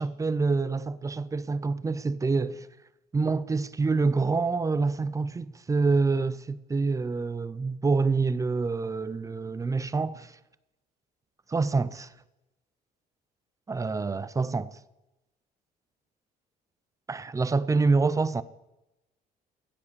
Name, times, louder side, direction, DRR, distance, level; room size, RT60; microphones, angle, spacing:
voice 1, 0.0-2.7 3.1-10.3 11.5-12.1 13.7-14.7 17.1-18.4, right 4 dB, 20° right, 0.6 m, -26 dB
15.5 x 8.4 x 6.7 m
cardioid pair, 110°, 17 cm